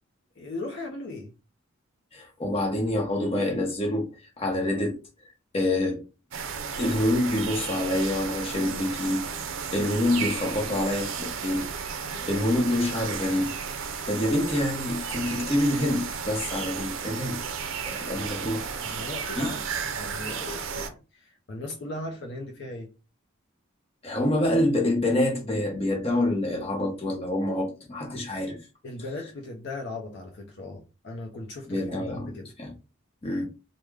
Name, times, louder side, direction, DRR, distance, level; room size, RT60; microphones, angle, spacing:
voice 1, 0.4-1.3 10.6-11.0 12.0-12.3 18.7-22.9 28.8-32.5, left 2 dB, 55° left, 0.5 m, -38 dB
voice 2, 2.1-4.1 4.4-5.0 5.5-6.0 6.7-9.3 9.7-11.7 12.3-13.6 14.1-17.4 17.8-18.7 19.4-19.5 24.0-28.6 31.7-32.3 32.6-32.7 33.2-33.4, left 1 dB, 30° left, 0.9 m, -26 dB
sound 1, 6.3-20.9, right 6 dB, 65° right, 0.4 m, -34 dB
3.1 x 2.1 x 3.5 m
head